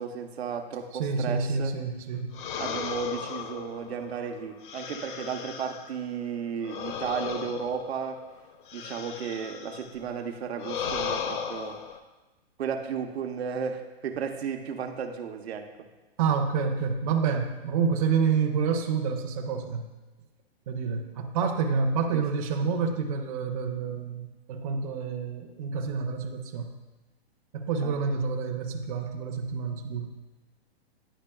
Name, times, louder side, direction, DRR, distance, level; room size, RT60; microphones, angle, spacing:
voice 1, 0.0-1.7 2.6-8.2 8.7-11.8 12.6-15.9 22.1-22.2 27.8-28.0, right 6 dB, 75° right, 5 dB, 0.8 m, -34 dB
voice 2, 1.0-2.4 16.2-19.9 20.7-26.7 27.5-30.2, right 5 dB, 35° right, 2 dB, 0.5 m, -28 dB
sound 1, 2.3-6.0 6.6-10.0 10.6-12.0, left 7 dB, 50° left, 0.6 m, -36 dB
9.9 x 5.1 x 2.3 m, 1.1 s
hypercardioid pair, 155°, 32 cm